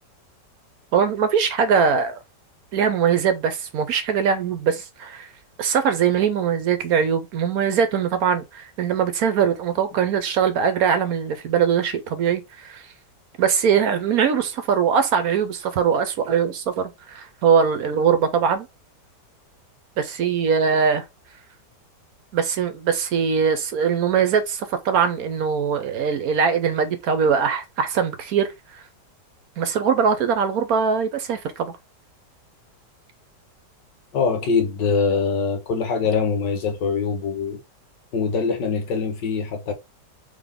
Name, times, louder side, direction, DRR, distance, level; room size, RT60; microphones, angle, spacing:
voice 1, 0.9-2.2 2.7-5.3 5.6-12.8 13.4-18.7 20.0-21.0 22.3-28.8 29.6-31.7, right 7 dB, 65° right, 1.0 m, -21 dB
voice 2, 34.1-37.6 38.1-39.7, left 5 dB, 80° left, 1.8 m, -23 dB
3.9 x 3.4 x 3.5 m
omnidirectional pair, 1.9 m